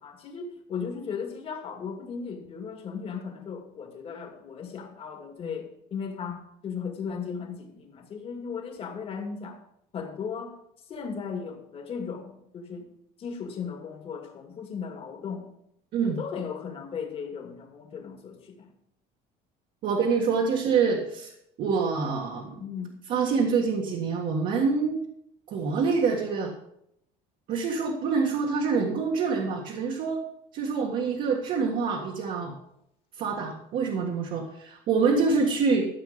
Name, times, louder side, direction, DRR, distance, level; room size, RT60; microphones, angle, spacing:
voice 1, 0.0-9.6 9.9-10.6 10.9-12.9 13.2-15.4 16.0-18.7 22.6-23.0, left 6 dB, 35° left, 3 dB, 2.2 m, -36 dB
voice 2, 19.8-21.3 21.6-22.6 23.1-25.0 25.5-26.5 27.5-30.2 30.5-32.5 33.2-35.9, right 5 dB, 50° right, -1 dB, 1.8 m, -26 dB
14.0 x 7.4 x 5.1 m, 0.76 s
cardioid pair, 160°, 17 cm